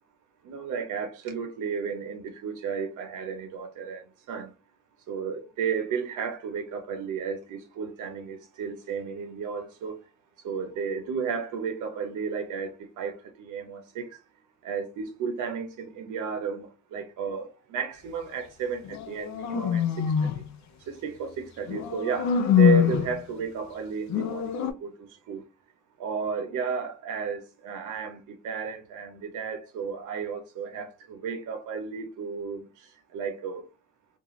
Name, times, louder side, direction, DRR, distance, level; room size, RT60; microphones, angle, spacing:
voice 1, 0.4-4.0 4.3-4.5 5.1-9.9 10.4-14.1 14.6-19.8 20.9-22.3 22.6-25.4 26.0-32.7 33.1-33.6, right 5 dB, 80° right, 0.7 m, -33 dB
sound 1, 18.8-20.4 21.7-23.2 24.1-24.7, left 8 dB, 65° left, 0.5 m, -24 dB
2.4 x 2.4 x 2.9 m
cardioid pair, 90°, 30 cm